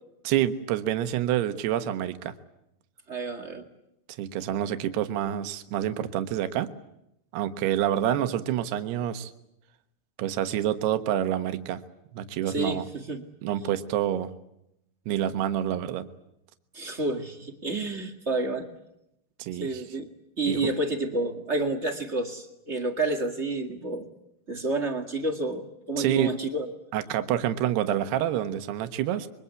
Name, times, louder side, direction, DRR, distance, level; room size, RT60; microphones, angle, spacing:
voice 1, 0.2-2.3 4.2-6.7 7.3-9.3 10.2-11.8 12.1-12.9 13.4-14.3 15.1-16.1 19.4-19.8 20.5-20.7 26.0-26.3 26.9-29.3, right 11 dB, 75° right, 9 dB, 3.2 m, -27 dB
voice 2, 3.1-3.6 12.5-13.2 16.7-18.7 19.6-20.1 20.4-24.1 24.5-26.7, right 2 dB, 40° right, 4 dB, 0.9 m, -29 dB
27.0 x 23.0 x 8.4 m, 0.82 s
omnidirectional pair, 5.0 m